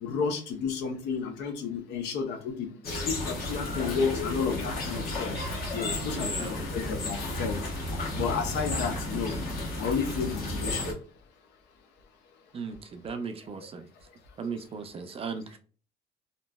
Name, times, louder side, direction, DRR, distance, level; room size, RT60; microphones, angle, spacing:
voice 1, 0.0-2.7 3.0-5.3 5.7-7.6 8.2-9.3 9.8-10.9, left 6 dB, 90° left, 5 dB, 0.7 m, -31 dB
sound 1, 2.8-10.9, left 2 dB, 60° left, 1.0 m, -33 dB
voice 2, 6.0-6.6 12.5-13.9 14.4-15.6, right 5 dB, 35° right, 8 dB, 0.4 m, -37 dB
2.9 x 2.5 x 2.2 m, 0.40 s
cardioid pair, 110°, 17 cm